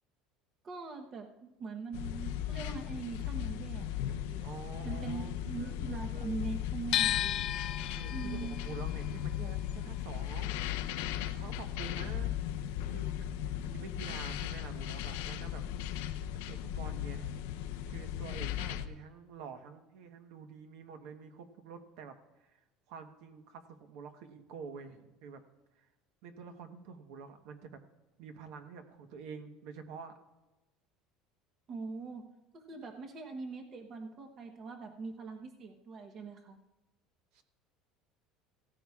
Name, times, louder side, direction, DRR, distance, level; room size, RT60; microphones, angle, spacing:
voice 1, 0.6-4.5 4.8-7.3 8.1-8.6 31.7-32.2 32.5-36.6, right 4 dB, 30° right, 3 dB, 0.9 m, -42 dB
sound 1, 1.9-18.9, left 11 dB, 80° left, 0.6 m, -37 dB
voice 2, 4.4-6.3 7.9-10.6 11.2-12.4 12.8-15.6 16.3-17.3 17.9-25.4 25.7-25.9 26.2-27.8 28.2-30.2 37.3-37.4, right 6 dB, 60° right, 7 dB, 1.0 m, -48 dB
sound 2, 6.9-13.0 13.2-14.5, left 12 dB, 35° left, 0.4 m, -36 dB
16.5 x 14.0 x 2.4 m, 1.1 s
cardioid pair, 180°, 0 cm